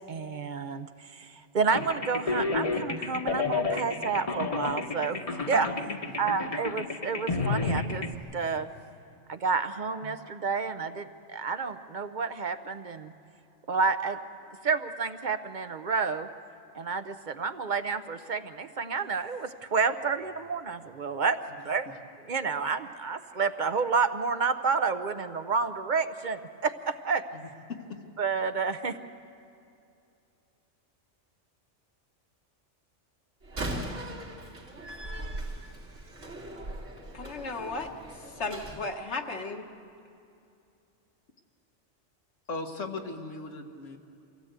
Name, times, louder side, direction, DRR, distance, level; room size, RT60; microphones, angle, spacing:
voice 1, 0.1-5.2 5.5-5.7 6.2-8.1 8.3-8.7 9.3-13.1 13.7-14.2 14.6-16.3 16.7-21.4 21.6-21.9 22.3-27.2 28.2-28.9, right 5 dB, 45° right, 10 dB, 0.8 m, -30 dB
sound 1, 1.7-8.1, left 4 dB, 30° left, 1.1 m, -31 dB
voice 2, 27.3-27.8 42.5-44.0, left 3 dB, 85° left, 4 dB, 1.8 m, -38 dB
Slam, 33.4-38.8, right 1 dB, 80° right, 3.0 m, -39 dB
voice 3, 37.1-37.9 38.3-39.7, left 3 dB, 65° left, 3 dB, 1.6 m, -35 dB
24.0 x 16.0 x 8.1 m, 2.6 s
omnidirectional pair, 1.2 m